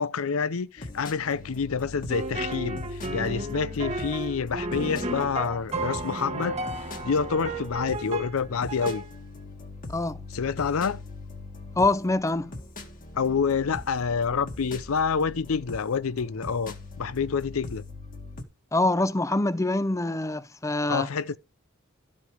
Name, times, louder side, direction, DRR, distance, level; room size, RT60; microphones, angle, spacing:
voice 1, 0.0-9.0 10.3-11.0 13.1-17.8 20.9-21.4, left 5 dB, 80° left, 0.6 m, -28 dB
sound 1, 0.8-18.4, left 2 dB, 40° left, 1.7 m, -41 dB
sound 2, 2.1-8.4 8.7-9.1, right 2 dB, 30° right, 1.2 m, -33 dB
voice 2, 11.8-12.5 18.7-21.1, left 2 dB, 15° left, 0.6 m, -25 dB
12.5 x 5.3 x 4.8 m
head